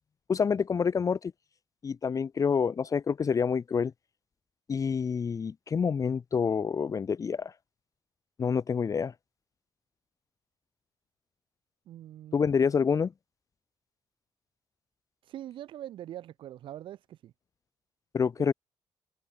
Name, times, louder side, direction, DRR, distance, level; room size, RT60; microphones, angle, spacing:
voice 1, 0.3-1.3 1.8-3.9 4.7-7.5 8.4-9.1 12.3-13.1 18.1-18.5, left 6 dB, 40° left, 1.1 m, -27 dB
voice 2, 11.9-12.4 15.3-17.3, right 12 dB, 80° right, 4.0 m, -43 dB
open air
cardioid pair, 85°, 8 cm